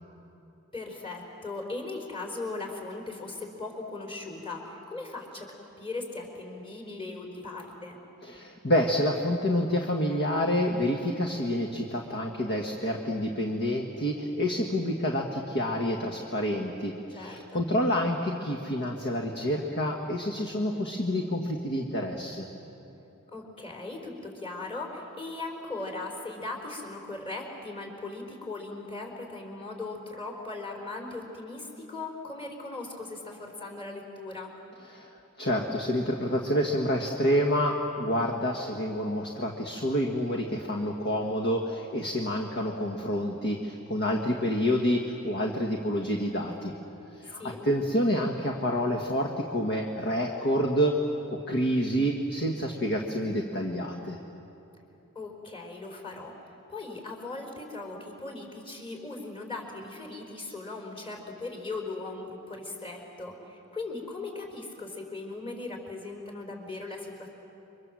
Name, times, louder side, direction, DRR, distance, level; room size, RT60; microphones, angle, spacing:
voice 1, 0.7-8.0 17.1-17.7 23.3-34.5 47.2-47.6 55.1-67.3, left 3 dB, 25° left, 2 dB, 4.6 m, -39 dB
voice 2, 8.2-22.5 34.9-35.1 35.4-46.7 47.2-50.9 51.5-54.2, equal, 50° left, 2 dB, 1.7 m, -28 dB
29.5 x 24.5 x 7.7 m, 2.9 s
head